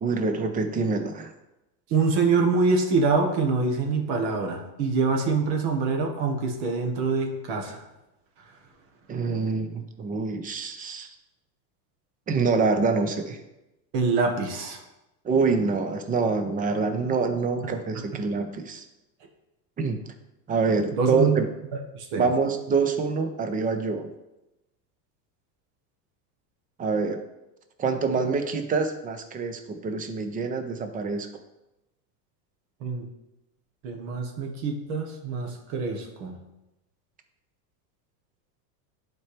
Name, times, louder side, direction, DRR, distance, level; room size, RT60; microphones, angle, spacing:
voice 1, 0.0-1.3 9.1-11.1 12.3-13.4 15.2-18.8 19.8-20.0 20.5-21.5 22.2-24.1 26.8-27.2 27.8-31.3, right 4 dB, 15° right, 7 dB, 0.6 m, -26 dB
voice 2, 1.9-7.8 13.9-14.8 21.0-21.4 21.9-22.2 32.8-33.1 33.8-36.3, right 4 dB, 50° right, 3 dB, 1.5 m, -25 dB
10.5 x 4.5 x 3.3 m, 0.95 s
supercardioid pair, 130°, 50 cm